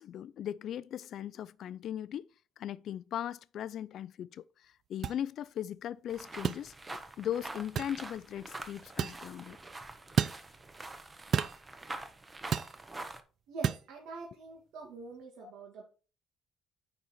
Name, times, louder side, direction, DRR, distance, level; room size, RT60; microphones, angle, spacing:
voice 1, 0.0-2.3 2.6-6.7 7.2-9.6 15.4-15.5, left 10 dB, 55° left, 0.4 m, -38 dB
sound 1, 5.0-5.2 6.4-6.6 7.8-8.0 9.0-9.2 10.2-10.4 11.3-11.6 12.5-12.7 13.6-13.8, right 8 dB, 45° right, 0.4 m, -30 dB
sound 2, 6.1-13.2, right 2 dB, 15° right, 0.8 m, -45 dB
voice 2, 13.5-15.8, right 4 dB, 85° right, 2.1 m, -45 dB
9.7 x 4.1 x 4.5 m
cardioid pair, 150°, 0 cm